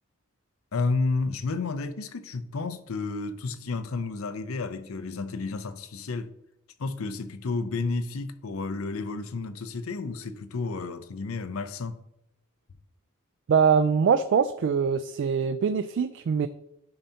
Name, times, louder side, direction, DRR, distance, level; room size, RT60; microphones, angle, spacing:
voice 1, 0.7-6.3 6.8-12.0, left 3 dB, 90° left, 0.6 m, -31 dB
voice 2, 13.5-16.5, right 6 dB, 60° right, 0.3 m, -23 dB
10.5 x 5.6 x 2.8 m
head